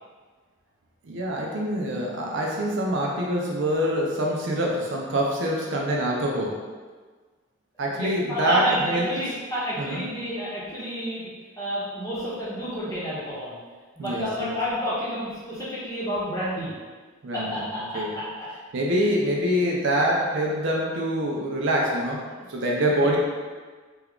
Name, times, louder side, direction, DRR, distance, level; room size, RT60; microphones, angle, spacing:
voice 1, 1.0-6.6 7.8-9.1 9.8-10.0 14.0-14.5 17.2-17.5 17.9-18.1 18.7-22.2 22.5-23.2, equal, 55° right, -2 dB, 0.5 m, -25 dB
voice 2, 7.9-11.3 11.6-13.6 14.0-16.7 17.3-18.5 19.0-19.1 23.0-23.1, equal, 15° left, -9 dB, 0.9 m, -30 dB
3.4 x 2.3 x 3.5 m, 1.4 s
head